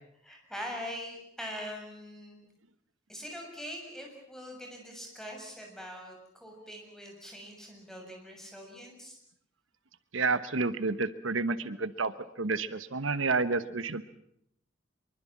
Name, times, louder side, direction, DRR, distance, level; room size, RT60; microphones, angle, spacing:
voice 1, 0.2-2.4 3.1-9.2, equal, ahead, 1 dB, 7.1 m, -43 dB
voice 2, 10.1-12.1 12.4-14.0, right 4 dB, 80° right, 13 dB, 1.2 m, -30 dB
25.0 x 23.5 x 7.5 m, 0.71 s
head